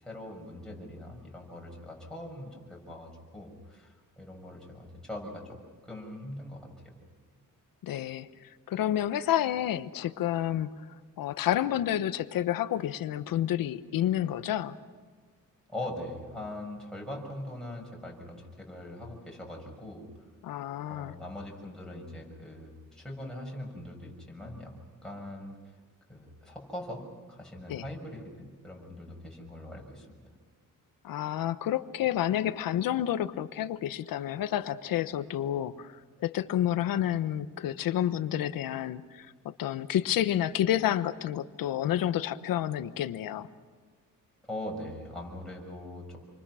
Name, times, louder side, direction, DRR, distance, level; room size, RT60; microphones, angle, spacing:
voice 1, 0.0-5.6 5.8-6.7 15.7-20.0 20.9-24.7 25.0-25.5 26.1-27.0 27.3-30.2 44.5-46.2, left 1 dB, ahead, -2 dB, 6.5 m, -41 dB
voice 2, 7.8-8.3 8.7-10.7 11.2-14.8 20.4-21.1 27.7-27.8 31.0-35.9 36.2-43.5, left 11 dB, 90° left, 12 dB, 1.1 m, -29 dB
28.5 x 24.0 x 6.3 m, 1.5 s
cardioid pair, 140°, 33 cm